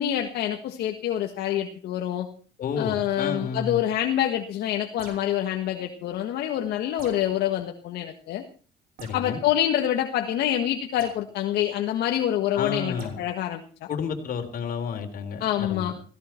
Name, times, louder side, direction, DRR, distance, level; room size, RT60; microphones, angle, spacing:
voice 1, 0.0-2.3 2.8-8.4 9.1-13.6 15.4-15.9, left 11 dB, 75° left, 4 dB, 1.6 m, -26 dB
voice 2, 2.6-3.8 9.0-9.4 12.5-13.2 13.9-15.9, left 6 dB, 55° left, 4 dB, 3.7 m, -31 dB
sound 1, 5.0-5.4 7.0-7.4 9.0-9.3 11.0-11.2 13.0-13.2, right 5 dB, 60° right, 5.8 m, -45 dB
17.5 x 16.5 x 4.5 m, 0.40 s
cardioid pair, 110°, 17 cm